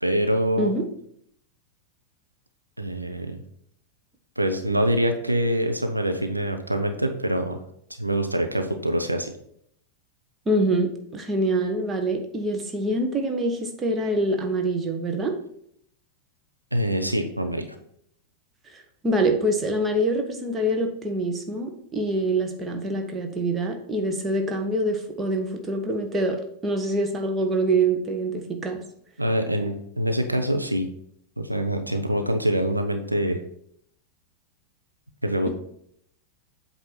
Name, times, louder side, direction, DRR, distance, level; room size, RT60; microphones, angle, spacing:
voice 1, 0.0-0.7 2.8-3.4 4.4-7.6 8.0-9.3 16.7-17.7 29.2-30.9 31.4-33.4 35.2-35.5, right 1 dB, 85° right, 5 dB, 0.6 m, -25 dB
voice 2, 10.5-15.4 19.0-28.8, right 1 dB, 20° right, 4 dB, 1.0 m, -25 dB
7.9 x 2.8 x 5.9 m, 0.69 s
figure-of-eight pair, 90°, 0 cm